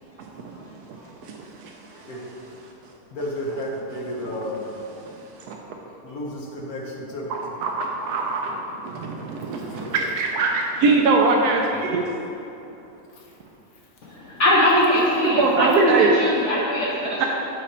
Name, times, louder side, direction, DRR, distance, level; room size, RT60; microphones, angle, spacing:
voice 1, 0.5-1.1 1.9-2.5 3.1-4.7 5.9-7.3 9.5-10.1 11.7-11.8, left 1 dB, 75° left, -2 dB, 1.5 m, -33 dB
voice 2, 7.3-8.6 8.8-12.0 15.2-16.2 17.2-17.3, right 3 dB, 85° right, 0 dB, 1.1 m, -21 dB
voice 3, 14.2-17.3, left 1 dB, 55° left, -5 dB, 1.0 m, -21 dB
7.6 x 4.9 x 4.2 m, 2.9 s
omnidirectional pair, 1.6 m